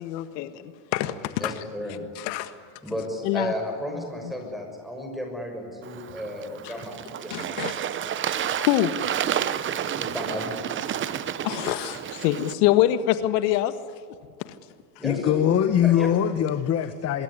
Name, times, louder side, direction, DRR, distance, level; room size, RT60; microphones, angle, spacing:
voice 1, 0.0-1.5 2.2-2.5 3.2-3.5 6.6-6.7 7.3-7.7 8.6-9.0 11.4-13.7 14.4-14.5, left 13 dB, 80° left, 11 dB, 1.7 m, -25 dB
voice 2, 1.4-2.0 2.8-7.6 9.9-10.6 15.0-15.5 15.8-16.1, left 1 dB, ahead, 2 dB, 6.2 m, -33 dB
Bird / Water, 5.8-12.5, right 9 dB, 25° right, 0.9 m, -30 dB
voice 3, 15.0-17.2, left 10 dB, 30° left, 11 dB, 1.2 m, -22 dB
24.5 x 22.5 x 9.8 m, 2.1 s
cardioid pair, 155°, 49 cm